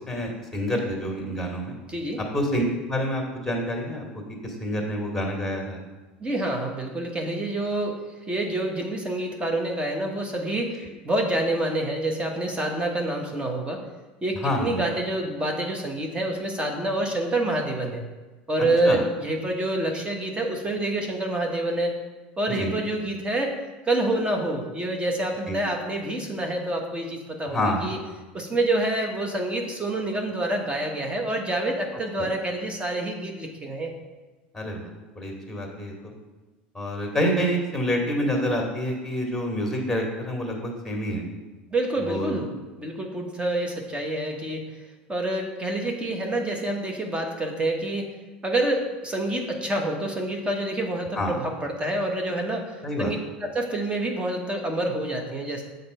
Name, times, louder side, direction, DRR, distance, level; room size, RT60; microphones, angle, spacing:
voice 1, 0.0-1.7 2.3-5.8 10.8-10.9 14.4-14.8 18.8-19.0 22.6-22.7 25.5-25.6 27.5-27.9 32.2-32.3 34.5-36.1 36.7-41.3 42.0-42.4 51.2-51.3 52.8-53.1, equal, ahead, 1 dB, 2.2 m, -27 dB
voice 2, 1.9-2.2 6.2-8.0 8.3-13.8 14.2-18.0 18.5-22.0 22.4-23.6 23.8-28.0 28.3-33.9 41.7-42.5 42.8-44.8 45.1-48.1 48.4-53.2 53.4-55.6, right 1 dB, 20° right, 2 dB, 1.1 m, -27 dB
7.2 x 4.0 x 5.5 m, 1.2 s
hypercardioid pair, 85°, 6 cm